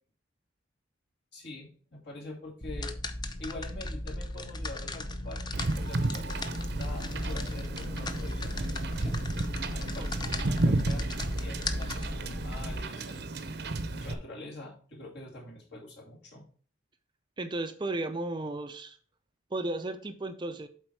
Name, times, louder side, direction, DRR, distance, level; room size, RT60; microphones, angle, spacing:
voice 1, 1.3-2.9 3.4-9.1 9.7-13.3 13.9-16.4, left 2 dB, 55° left, -1 dB, 2.5 m, -45 dB
sound 1, 2.6-12.8, left 1 dB, 20° left, 0.6 m, -36 dB
Wind / Boat Water vehicle, 5.5-14.1, right 2 dB, 55° right, 0.8 m, -33 dB
voice 2, 17.4-19.0 19.5-20.7, right 2 dB, 25° right, 8 dB, 0.5 m, -34 dB
7.8 x 4.3 x 4.7 m, 0.43 s
head